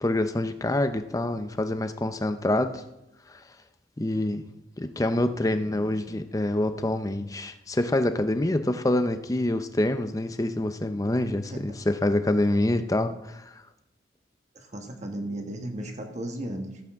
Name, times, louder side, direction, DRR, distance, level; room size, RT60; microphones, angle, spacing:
voice 1, 0.0-2.8 3.3-3.4 4.0-4.5 4.8-13.5, left 1 dB, 20° left, 9 dB, 0.6 m, -26 dB
voice 2, 14.5-16.8, right 1 dB, 40° right, 3 dB, 1.4 m, -35 dB
15.5 x 8.4 x 3.6 m, 0.92 s
head